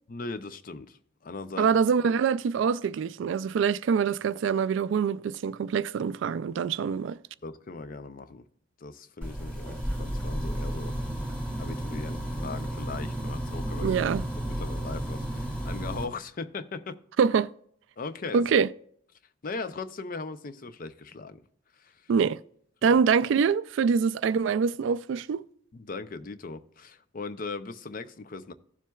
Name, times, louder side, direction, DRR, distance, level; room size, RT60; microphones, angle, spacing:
voice 1, 0.1-1.7 2.0-2.1 7.4-8.4 8.8-11.3 11.6-14.0 14.4-17.0 18.0-18.5 19.4-21.4 21.7-22.1 22.8-23.0 25.7-28.5, left 3 dB, 45° left, 0.5 m, -39 dB
voice 2, 1.6-7.2 13.8-14.2 17.2-17.5 18.3-18.7 22.1-22.4 22.8-25.4, right 6 dB, 65° right, 0.3 m, -25 dB
sound 1, 9.2-16.0, right 1 dB, 5° left, 2.2 m, -32 dB
15.5 x 7.3 x 2.3 m
head